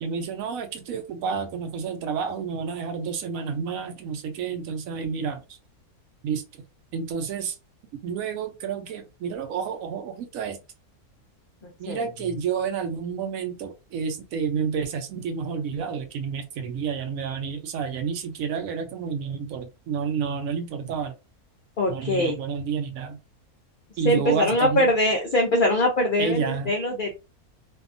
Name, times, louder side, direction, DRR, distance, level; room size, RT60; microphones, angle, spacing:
voice 1, 0.0-5.6 6.2-6.6 6.9-7.6 7.9-10.6 11.8-21.1 21.9-23.2 24.0-24.9 26.2-26.7, right 6 dB, 70° right, 0.9 m, -30 dB
voice 2, 21.8-22.4 24.0-27.1, left 1 dB, 85° left, 0.4 m, -22 dB
2.7 x 2.3 x 2.4 m
omnidirectional pair, 1.6 m